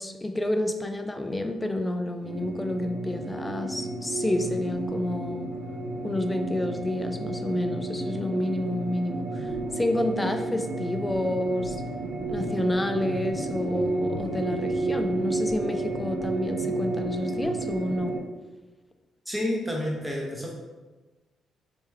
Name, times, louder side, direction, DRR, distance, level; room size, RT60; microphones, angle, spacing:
voice 1, 0.0-5.5 6.0-11.8 12.3-18.2, left 1 dB, 15° left, 7 dB, 0.4 m, -29 dB
sound 1, 2.2-18.2, right 2 dB, 90° right, 0.7 m, -31 dB
voice 2, 19.3-20.5, left 1 dB, 10° right, -2 dB, 1.1 m, -29 dB
3.4 x 2.9 x 3.4 m, 1.2 s
cardioid pair, 90°, 0 cm